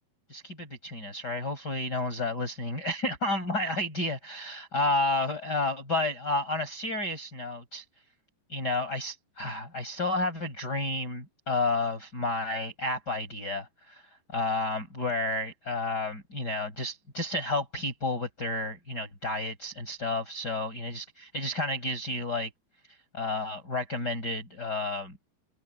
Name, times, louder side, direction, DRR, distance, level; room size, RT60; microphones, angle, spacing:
voice 1, 0.3-7.8 8.5-14.0 14.3-22.5 23.1-25.2, left 2 dB, 20° left, 6.0 m, -31 dB
omnidirectional pair, 5.1 m